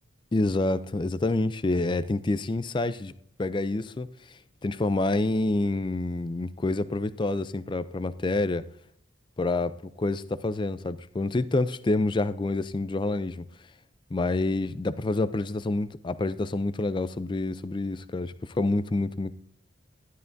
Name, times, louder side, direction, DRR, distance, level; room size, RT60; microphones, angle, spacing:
voice 1, 0.3-3.1 3.4-4.1 4.6-8.6 9.4-13.4 14.1-19.3, left 2 dB, 25° left, 14 dB, 0.4 m, -27 dB
12.5 x 11.0 x 2.6 m, 0.65 s
head